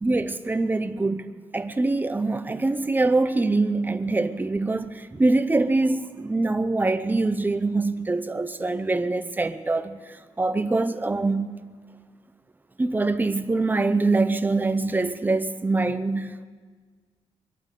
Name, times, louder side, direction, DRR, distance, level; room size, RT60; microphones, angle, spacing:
voice 1, 0.0-11.6 12.8-16.4, right 3 dB, 15° right, 0.7 m, -24 dB
24.0 x 8.8 x 6.8 m
wide cardioid pair, 145°, 12 cm